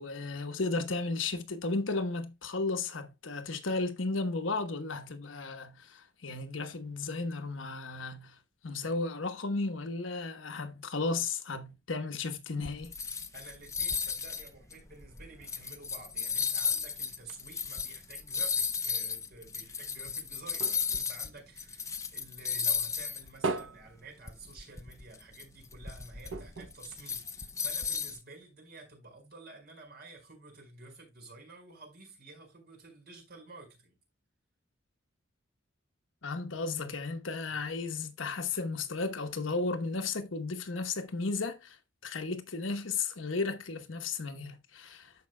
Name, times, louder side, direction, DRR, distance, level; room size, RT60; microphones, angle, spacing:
voice 1, 0.0-8.4 8.6-12.9 36.2-45.1, left 3 dB, 85° left, 1.1 m, -34 dB
sound 1, 12.6-21.3 21.6-23.3 23.6-23.7 24.3-28.2, left 6 dB, 15° left, 0.7 m, -34 dB
voice 2, 13.3-34.0, right 3 dB, 55° right, 4.7 m, -51 dB
sound 2, 19.7-22.3 22.7-25.0 25.3-25.4 25.7-25.8 26.3-27.8 28.4-28.5, right 3 dB, 75° right, 0.8 m, -40 dB
14.0 x 5.2 x 2.2 m
head